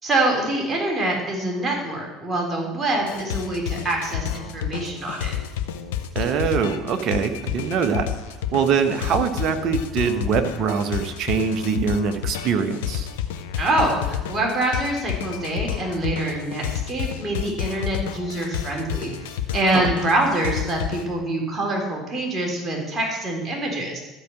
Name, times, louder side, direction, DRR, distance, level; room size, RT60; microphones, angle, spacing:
voice 1, 0.0-5.3 13.6-24.0, right 2 dB, 25° right, -1 dB, 3.7 m, -25 dB
sound 1, 3.0-21.2, left 10 dB, 75° left, 0.8 m, -30 dB
voice 2, 6.1-8.1 8.5-13.1 19.7-19.9, right 6 dB, 50° right, 7 dB, 1.2 m, -23 dB
13.5 x 5.0 x 7.2 m, 1.1 s
hypercardioid pair, 65°, 0 cm